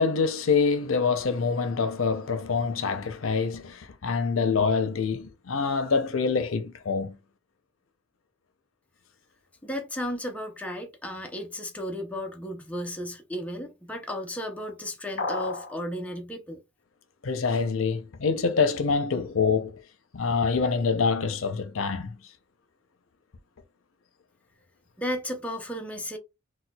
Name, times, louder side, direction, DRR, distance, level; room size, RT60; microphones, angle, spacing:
voice 1, 0.0-7.2 17.2-19.8 20.1-22.2, left 5 dB, 80° left, 0.6 m, -25 dB
voice 2, 9.6-16.6 25.0-26.2, equal, 5° left, 0.5 m, -34 dB
sound 1, 15.2-15.8, left 3 dB, 50° left, 1.2 m, -31 dB
4.2 x 2.2 x 2.2 m
head